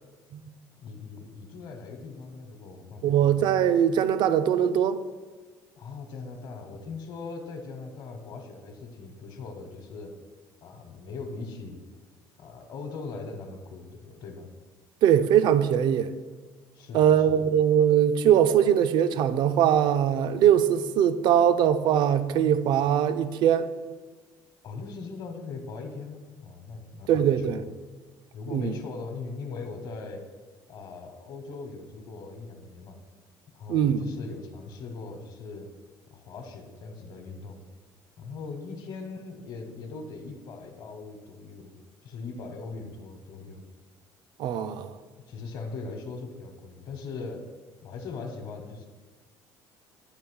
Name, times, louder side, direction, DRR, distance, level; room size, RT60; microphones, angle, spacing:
voice 1, 0.8-3.4 5.8-10.1 10.6-11.8 12.4-14.5 16.7-17.4 24.6-27.6 28.3-30.2 30.7-33.0 33.5-35.7 36.1-37.6 38.2-41.8 42.0-43.6 45.3-47.4 47.8-48.9, left 4 dB, 60° left, 1.0 m, -40 dB
voice 2, 3.0-5.0 15.0-16.1 16.9-23.7 27.1-27.6 28.5-28.8 33.7-34.0 44.4-44.9, right 9 dB, 65° right, 0.4 m, -21 dB
8.3 x 3.1 x 6.2 m
cardioid pair, 130°, 8 cm